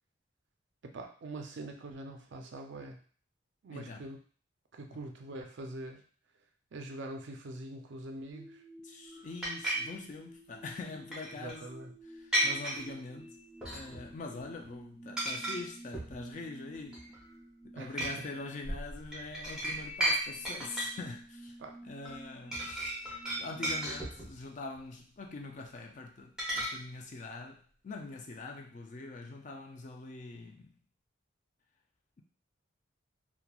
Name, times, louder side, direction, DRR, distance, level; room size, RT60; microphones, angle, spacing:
voice 1, 0.8-3.0 3.6-4.2 4.7-6.0 6.7-8.6 11.4-11.9 17.8-18.3 21.6-21.8, right 2 dB, 60° right, 4 dB, 0.4 m, -43 dB
voice 2, 3.7-4.1 8.8-11.7 12.0-13.4 13.7-17.0 17.6-21.6 21.8-23.0 23.4-30.8, left 3 dB, 35° left, 2 dB, 0.3 m, -44 dB
sound 1, 8.3-24.0, equal, 60° left, 1.3 m, -52 dB
sound 2, 9.4-9.8 11.1-11.5 12.3-12.8 13.6-14.1 14.4-14.7 15.2-15.6 15.9-16.2 16.7-17.3 18.0-18.1 18.6-20.2 20.5-21.0 22.1-22.2 22.5-24.4 26.4-26.7, right 1 dB, 5° right, 0.7 m, -33 dB
2.9 x 2.1 x 2.3 m, 0.43 s
head